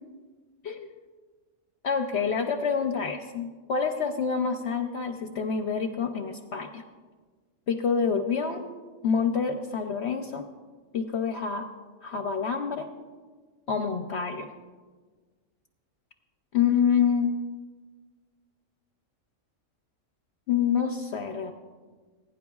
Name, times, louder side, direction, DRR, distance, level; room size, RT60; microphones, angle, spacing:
voice 1, 1.8-6.8 7.7-8.6 9.0-10.5 10.9-11.7 12.0-12.9 13.7-14.5 16.5-17.3 20.5-21.5, left 6 dB, 60° left, 5 dB, 0.8 m, -27 dB
21.0 x 10.0 x 2.3 m, 1.4 s
omnidirectional pair, 1.4 m